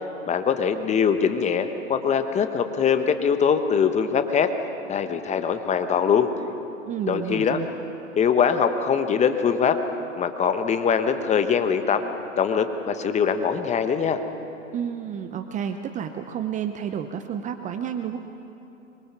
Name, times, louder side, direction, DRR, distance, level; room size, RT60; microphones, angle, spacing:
voice 1, 0.3-4.5 4.9-6.3 7.1-7.6 8.2-9.8 10.2-12.0 12.4-14.2, left 7 dB, 20° left, 8 dB, 1.1 m, -22 dB
voice 2, 6.9-7.7 14.7-18.2, right 8 dB, 20° right, 8 dB, 0.7 m, -30 dB
25.0 x 23.0 x 6.0 m, 2.9 s
hypercardioid pair, 110°, 38 cm